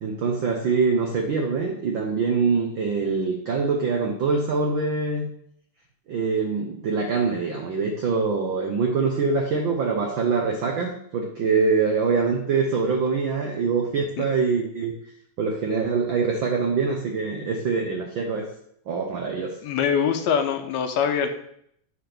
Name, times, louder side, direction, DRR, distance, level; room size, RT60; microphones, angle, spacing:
voice 1, 0.0-5.3 6.1-14.9 15.4-18.4 18.9-19.6, right 4 dB, 85° right, 2 dB, 1.0 m, -24 dB
voice 2, 19.6-21.3, left 7 dB, 75° left, 6 dB, 1.9 m, -23 dB
7.8 x 3.4 x 6.0 m, 0.69 s
omnidirectional pair, 3.3 m